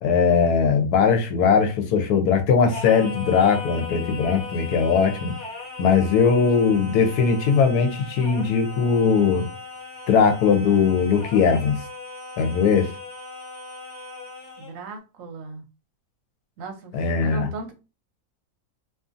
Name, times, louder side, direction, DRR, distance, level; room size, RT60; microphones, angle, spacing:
voice 1, 0.0-5.3 5.8-9.5 10.1-11.8 12.4-12.9 16.9-17.5, left 6 dB, 85° left, 1.2 m, -20 dB
Singing, 2.7-14.8, left 3 dB, 55° left, 1.6 m, -38 dB
voice 2, 14.6-15.6 16.6-17.0 17.2-17.7, right 3 dB, 65° right, 0.9 m, -36 dB
2.6 x 2.5 x 2.5 m
omnidirectional pair, 1.6 m